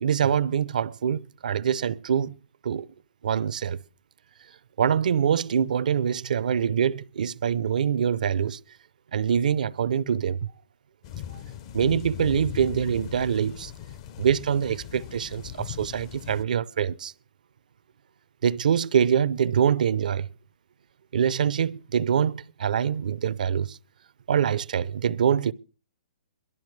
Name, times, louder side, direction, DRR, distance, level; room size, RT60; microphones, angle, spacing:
voice 1, 0.0-2.3 2.6-2.9 3.2-3.8 4.8-8.6 9.1-10.5 11.3-11.4 11.7-13.7 14.2-17.1 18.4-20.3 21.1-23.8 24.3-25.5, right 8 dB, 70° right, 0.6 m, -24 dB
sound 1, 11.0-16.4, left 10 dB, 40° left, 0.7 m, -39 dB
21.5 x 12.0 x 3.3 m
hypercardioid pair, 145°, 5 cm